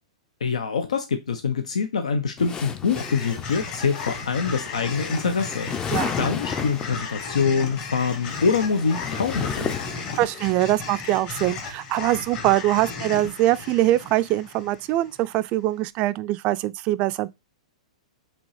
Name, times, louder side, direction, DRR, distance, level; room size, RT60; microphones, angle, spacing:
voice 1, 0.4-9.8, left 5 dB, 80° left, 0.5 m, -25 dB
sound 1, 2.4-7.0 8.0-10.5, left 6 dB, 20° left, 0.5 m, -33 dB
sound 2, 2.9-15.3, left 5 dB, 40° left, 1.6 m, -35 dB
voice 2, 10.1-17.3, right 15 dB, 40° right, 0.3 m, -23 dB
5.2 x 2.9 x 3.2 m
hypercardioid pair, 115°, 4 cm